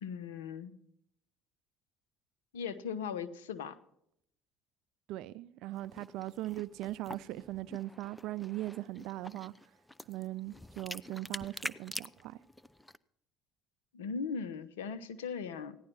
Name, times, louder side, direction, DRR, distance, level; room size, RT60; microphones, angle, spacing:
voice 1, 0.0-0.8 2.5-3.8 13.9-15.8, left 6 dB, 85° left, 1.0 m, -38 dB
voice 2, 5.1-9.7 10.0-12.4, right 16 dB, 70° right, 0.4 m, -40 dB
sound 1, 5.7-13.0, left 1 dB, 5° left, 0.6 m, -46 dB
16.0 x 11.0 x 5.5 m
hypercardioid pair, 65°, 0 cm